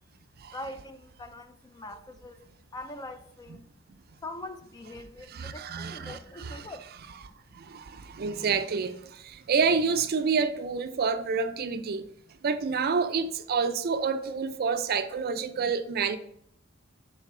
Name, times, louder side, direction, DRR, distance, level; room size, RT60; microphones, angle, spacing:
voice 1, 0.5-2.4 2.7-3.6 4.2-6.9 7.9-8.1, left 2 dB, 20° left, 0.4 m, -42 dB
voice 2, 5.3-6.7 7.5-12.1 12.4-16.2, right 5 dB, 50° right, 0.4 m, -28 dB
6.5 x 4.0 x 3.7 m
head